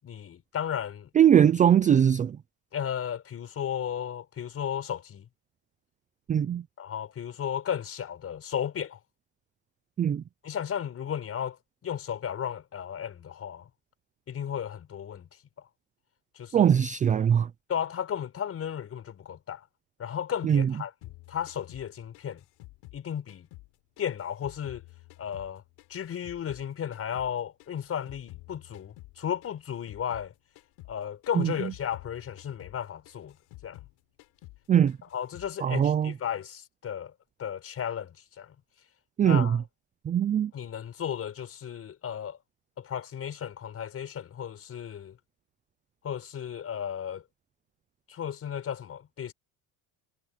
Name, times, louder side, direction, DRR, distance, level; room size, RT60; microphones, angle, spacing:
voice 1, 0.0-1.1 2.7-5.3 6.8-9.0 10.4-11.6 11.8-13.7 14.3-15.3 15.6-15.7 16.3-16.7 17.7-19.7 20.0-22.4 22.9-23.5 24.0-24.9 25.2-25.6 25.9-30.3 30.9-33.4 33.6-33.8 35.1-37.1 37.4-38.5 39.2-39.6 40.5-42.4 42.8-45.2 46.0-47.2 48.1-49.3, left 9 dB, 35° left, 6.2 m, -34 dB
voice 2, 1.2-2.4 6.3-6.6 10.0-10.2 16.5-17.5 20.4-20.7 31.4-31.7 34.7-35.0 35.6-36.1 39.2-39.6 40.1-40.5, right 9 dB, 20° right, 0.3 m, -21 dB
sound 1, 21.0-23.7 24.0-26.7 26.9-30.3 30.5-31.0 31.2-33.9 34.2-34.6 34.9-35.5, left 20 dB, 85° left, 7.5 m, -50 dB
cardioid pair, 170°, 41 cm